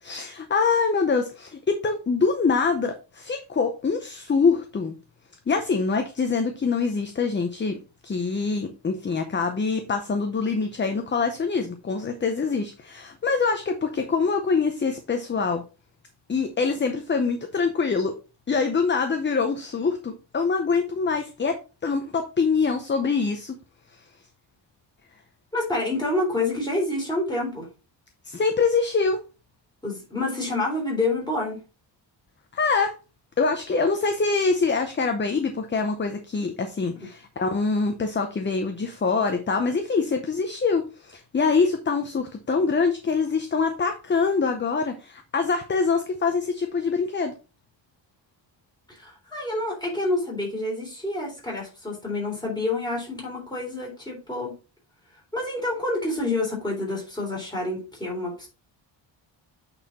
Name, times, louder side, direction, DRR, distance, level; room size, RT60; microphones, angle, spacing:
voice 1, 0.0-4.9 5.5-7.8 8.0-15.6 16.3-18.2 18.5-23.5 23.9-24.0 28.2-29.2 32.5-32.9 33.4-47.3, left 4 dB, 25° left, 6 dB, 0.7 m, -24 dB
voice 2, 25.5-27.7 29.8-31.6 48.9-54.5 55.3-58.5, left 2 dB, 10° left, -3 dB, 3.6 m, -28 dB
8.8 x 4.3 x 4.1 m, 0.31 s
wide cardioid pair, 160°, 46 cm